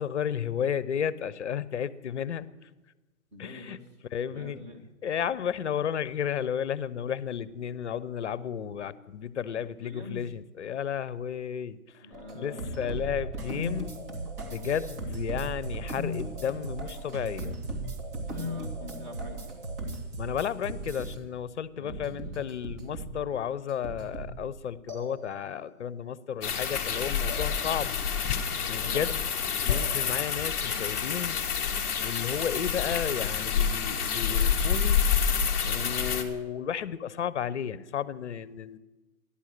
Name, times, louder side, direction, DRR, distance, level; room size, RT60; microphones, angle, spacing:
voice 1, 0.0-2.7 3.4-3.8 4.1-4.6 5.0-12.1 12.3-14.0 14.4-17.6 20.2-28.0 28.7-29.1 29.6-31.4 32.0-35.0 35.6-38.8, left 8 dB, 50° left, 18 dB, 0.7 m, -33 dB
voice 2, 3.3-3.8 4.3-4.8 9.5-10.2 12.0-13.2 18.1-19.6 21.7-22.4 28.8-29.2, left 1 dB, 20° right, -1 dB, 2.0 m, -45 dB
sound 1, 12.1-20.1 20.7-21.2 21.9-23.3 23.7-24.5 24.9-25.7 27.3-28.1 29.7-30.5, equal, 40° right, 2.7 m, -38 dB
sound 2, 13.1-21.1, right 4 dB, 85° right, 2.1 m, -40 dB
sound 3, 26.4-36.2, left 7 dB, 10° left, 0.7 m, -28 dB
13.5 x 11.5 x 6.5 m, 1.2 s
hypercardioid pair, 155°, 44 cm